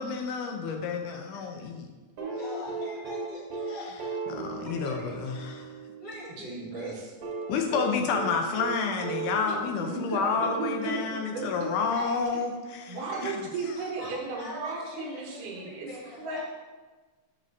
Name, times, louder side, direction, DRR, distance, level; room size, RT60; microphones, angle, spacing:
voice 1, 0.0-1.9 4.3-5.7 7.5-13.0 13.2-13.3, left 5 dB, 85° left, 3 dB, 2.2 m, -29 dB
sound 1, 2.2-6.3 7.2-10.8 12.2-12.3, right 4 dB, 55° right, 2.0 m, -36 dB
voice 2, 2.4-4.0 4.6-5.2 6.0-6.9 11.9-12.2 13.1-13.2 14.0-16.4, left 2 dB, 35° left, -8 dB, 2.6 m, -43 dB
voice 3, 6.4-7.1 9.8-11.7 12.9-15.9 16.2-16.4, right 3 dB, 85° right, -1 dB, 2.7 m, -35 dB
7.9 x 7.3 x 2.7 m, 1.3 s
omnidirectional pair, 3.7 m